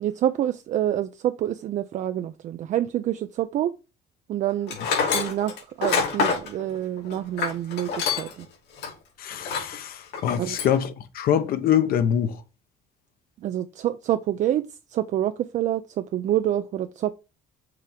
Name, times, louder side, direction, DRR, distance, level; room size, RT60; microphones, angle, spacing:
voice 1, 0.0-3.7 4.3-4.8 5.1-8.5 10.4-10.6 13.4-17.1, right 12 dB, 45° right, 0.4 m, -27 dB
Tools, 4.7-8.4 8.8-8.9 9.4-9.8 10.1-10.8, left 5 dB, 75° left, 2.8 m, -26 dB
voice 2, 9.2-10.9 11.1-12.3, left 9 dB, 60° left, 1.0 m, -24 dB
6.7 x 3.4 x 5.1 m
cardioid pair, 150°, 18 cm